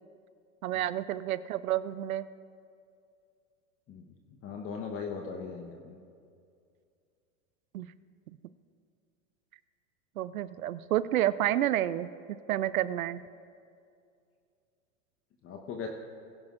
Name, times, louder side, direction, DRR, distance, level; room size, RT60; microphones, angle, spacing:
voice 1, 0.6-2.3 7.7-7.9 10.2-12.1 12.5-13.2, right 13 dB, 90° right, 16 dB, 0.6 m, -29 dB
voice 2, 4.4-6.0 15.4-15.9, left 5 dB, 35° left, 2 dB, 1.1 m, -38 dB
20.0 x 11.0 x 2.5 m, 2.3 s
hypercardioid pair, 105°, 41 cm